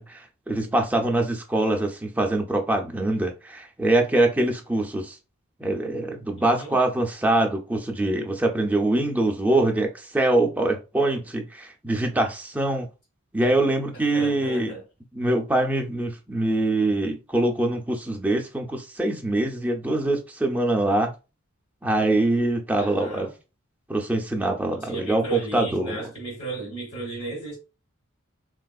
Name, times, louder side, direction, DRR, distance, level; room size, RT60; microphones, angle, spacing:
voice 1, 0.0-5.1 5.6-12.9 13.3-14.7 15.1-21.1 21.8-23.3 23.9-26.1, right 2 dB, 5° right, 0.4 m, -24 dB
voice 2, 6.4-6.8 14.1-14.8 15.2-15.3 22.8-23.3 24.8-27.6, right 3 dB, 50° left, 1.2 m, -34 dB
3.3 x 2.4 x 2.3 m
head